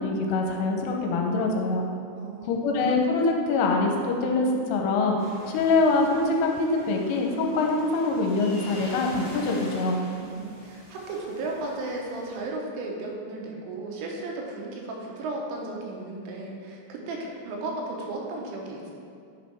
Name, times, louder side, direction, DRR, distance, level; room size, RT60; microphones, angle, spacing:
voice 1, 0.0-1.8 2.4-5.2 5.5-10.0, left 3 dB, 85° left, 1 dB, 3.1 m, -24 dB
voice 2, 2.1-2.6 10.1-18.9, right 2 dB, 90° right, -1 dB, 3.4 m, -35 dB
sound 1, 5.2-12.4, left 1 dB, 55° left, 1.5 m, -45 dB
10.0 x 5.1 x 3.4 m, 2.4 s
omnidirectional pair, 5.7 m